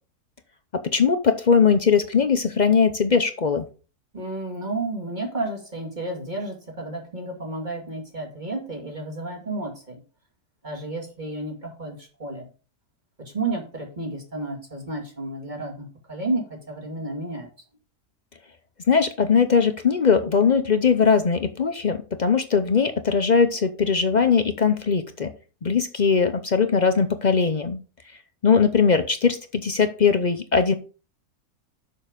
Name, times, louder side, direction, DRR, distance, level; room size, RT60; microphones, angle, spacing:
voice 1, 0.7-3.6 18.9-25.3 25.6-27.8 28.4-30.7, left 5 dB, 50° left, 9 dB, 0.5 m, -20 dB
voice 2, 4.1-10.0 10.6-12.5 13.2-17.5, right 2 dB, 30° right, 1 dB, 2.4 m, -31 dB
6.7 x 6.6 x 5.1 m, 0.35 s
omnidirectional pair, 1.6 m